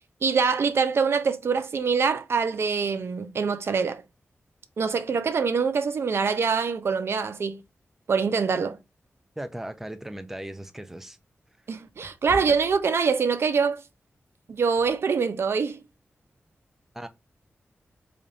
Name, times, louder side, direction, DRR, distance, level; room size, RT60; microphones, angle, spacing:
voice 1, 0.2-4.0 4.8-7.6 8.1-8.8 11.7-13.8 14.5-15.8, right 5 dB, 70° right, 0.4 m, -24 dB
voice 2, 9.4-11.2 12.5-12.6 16.9-17.1, right 1 dB, 5° right, 0.5 m, -37 dB
sound 1, 10.7-13.5 13.9-14.2 14.8-15.0, left 1 dB, 30° right, 1.2 m, -44 dB
3.4 x 2.6 x 3.8 m
wide cardioid pair, 105°, 4 cm